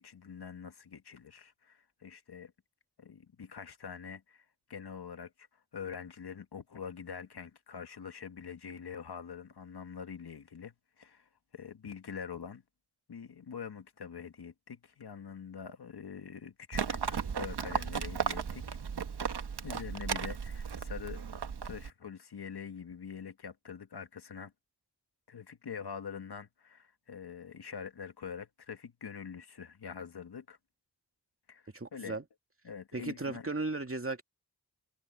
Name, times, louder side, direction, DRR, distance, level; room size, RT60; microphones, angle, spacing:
voice 1, 0.0-2.5 3.0-5.5 5.7-12.6 13.1-18.8 19.6-21.2 21.6-24.5 25.3-30.6 31.5-31.6 31.9-32.2 32.6-33.5, left 6 dB, 75° left, 1.7 m, -45 dB
Livestock farm animals working animals, 16.7-21.9, right 6 dB, 80° right, 1.4 m, -35 dB
voice 2, 31.7-32.2 32.9-34.2, right 3 dB, 35° right, 2.4 m, -36 dB
cardioid pair, 50°, 39 cm